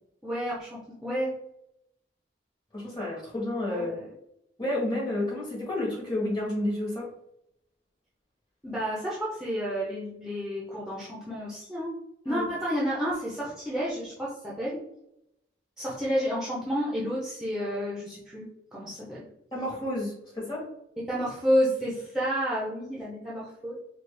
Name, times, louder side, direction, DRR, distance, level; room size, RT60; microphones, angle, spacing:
voice 1, 0.2-1.3 3.7-4.0 8.6-11.9 12.2-14.8 15.8-19.2 21.0-23.8, equal, ahead, -7 dB, 0.7 m, -30 dB
voice 2, 2.7-3.9 4.6-7.1 12.3-12.5 19.5-20.6, left 1 dB, 25° left, -4 dB, 1.5 m, -30 dB
4.4 x 2.4 x 3.3 m, 0.81 s
head